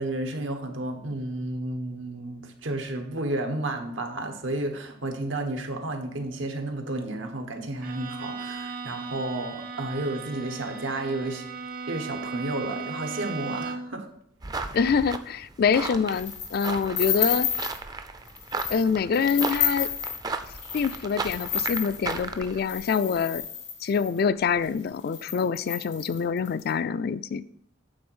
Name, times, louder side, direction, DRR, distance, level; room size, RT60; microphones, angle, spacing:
voice 1, 0.0-11.4 11.9-14.1, right 2 dB, 90° right, 4 dB, 1.2 m, -32 dB
Bowed string instrument, 7.8-14.0, right 4 dB, 50° right, 0.8 m, -37 dB
sound 1, 14.4-22.6, right 3 dB, 20° right, 0.4 m, -35 dB
voice 2, 14.7-17.5 18.7-19.9 20.7-23.4 23.8-27.4, left 6 dB, 55° left, 16 dB, 0.3 m, -25 dB
sound 2, 16.1-17.8 18.3-18.9 19.1-24.2 24.8-24.9 25.1-26.6, left 9 dB, 85° left, 2.2 m, -31 dB
8.7 x 3.9 x 6.1 m, 0.70 s
head